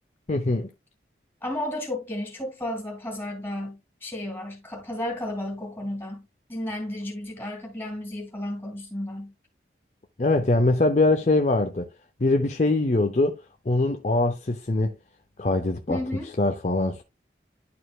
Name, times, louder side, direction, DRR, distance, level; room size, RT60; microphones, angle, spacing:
voice 1, 0.3-0.7 10.2-11.9 12.2-13.4 13.7-14.9 15.4-16.0 16.4-17.0, left 2 dB, 40° left, 0.6 m, -22 dB
voice 2, 1.4-9.3 15.9-16.3, left 1 dB, 10° left, 2.9 m, -33 dB
11.5 x 4.4 x 2.3 m
head